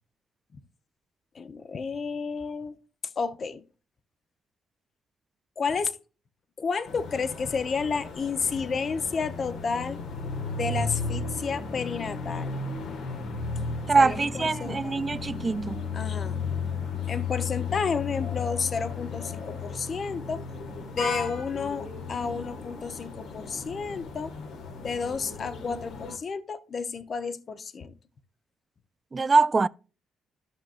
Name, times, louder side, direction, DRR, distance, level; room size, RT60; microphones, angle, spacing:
voice 1, 1.3-2.8 3.2-3.6 5.6-6.0 6.6-10.0 10.5-12.6 14.0-15.2 15.9-16.4 17.1-20.4 20.9-24.3 24.8-27.9, left 5 dB, 45° left, 0.8 m, -31 dB
sound 1, 6.9-26.2, left 4 dB, 75° left, 1.9 m, -35 dB
voice 2, 13.9-15.8 29.1-29.7, right 4 dB, 30° right, 0.3 m, -23 dB
13.0 x 6.1 x 2.5 m
cardioid pair, 90°, 0 cm